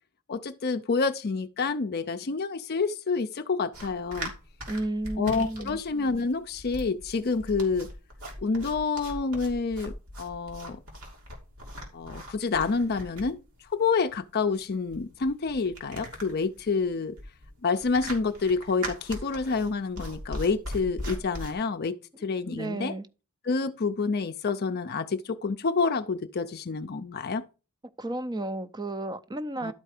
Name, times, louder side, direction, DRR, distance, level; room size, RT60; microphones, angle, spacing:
voice 1, 0.3-4.3 5.2-7.9 8.4-10.8 11.9-17.2 17.6-22.9 23.4-27.4 29.6-29.7, left 4 dB, 45° left, 0.5 m, -28 dB
sound 1, 3.7-21.5, equal, 85° right, 3.2 m, -40 dB
voice 2, 4.7-5.8 22.5-23.1 28.0-29.7, right 1 dB, 20° right, 0.6 m, -32 dB
12.0 x 4.6 x 4.9 m
head